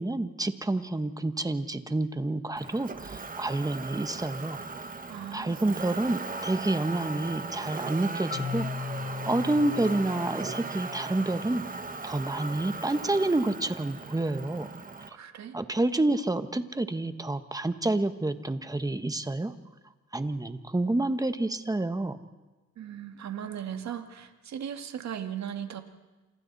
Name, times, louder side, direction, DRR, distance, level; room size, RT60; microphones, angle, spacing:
voice 1, 0.0-4.6 5.3-9.0 9.3-11.6 12.0-14.7 15.1-15.2 15.5-19.5 20.1-22.2, right 2 dB, 10° right, 9 dB, 1.4 m, -29 dB
Motor vehicle (road), 2.6-15.1, right 3 dB, 30° right, 1.6 m, -38 dB
voice 2, 5.1-5.7 15.1-15.6 22.8-25.8, right 9 dB, 65° right, 6 dB, 2.1 m, -37 dB
Marimba xylophone, 8.3-12.2, left 5 dB, 30° left, 1.6 m, -38 dB
29.0 x 27.5 x 4.2 m, 1.2 s
cardioid pair, 90°, 30 cm